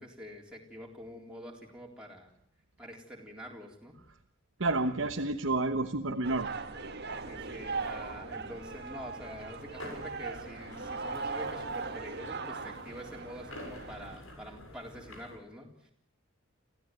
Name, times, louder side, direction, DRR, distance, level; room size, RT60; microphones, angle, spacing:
voice 1, 0.0-2.3 2.8-4.0 4.8-5.3 7.2-15.9, equal, 5° right, -2 dB, 3.9 m, -46 dB
voice 2, 4.6-6.5, right 2 dB, 70° right, 4 dB, 1.2 m, -30 dB
sound 1, 6.2-14.2, right 4 dB, 55° right, 1.7 m, -39 dB
sound 2, 7.1-15.4, left 1 dB, 80° left, 6.8 m, -49 dB
27.0 x 15.5 x 9.4 m, 0.72 s
head